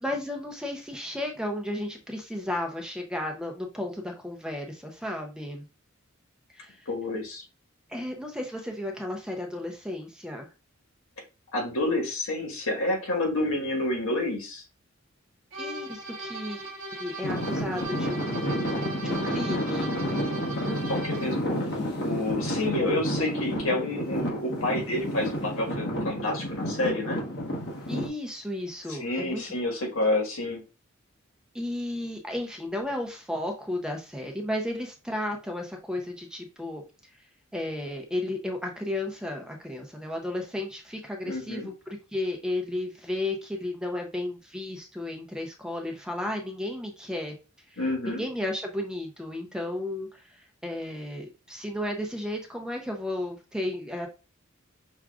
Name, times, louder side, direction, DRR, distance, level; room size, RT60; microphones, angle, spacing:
voice 1, 0.0-5.7 6.5-6.9 7.9-10.5 15.6-16.6 17.0-20.0 27.9-29.5 31.5-36.8 37.5-47.4 47.7-47.8 48.1-54.1, left 1 dB, 5° right, 2 dB, 0.6 m, -33 dB
voice 2, 6.9-7.4 11.5-14.6 20.8-27.2 28.9-30.6 41.2-41.7 47.8-48.2, left 2 dB, 80° left, 0 dB, 1.5 m, -29 dB
sound 1, 15.5-21.5, right 1 dB, 65° right, 1.0 m, -38 dB
Traffic noise roadway noise / Engine, 17.2-28.1, equal, 55° left, 1.1 m, -30 dB
6.0 x 2.4 x 2.3 m, 0.30 s
head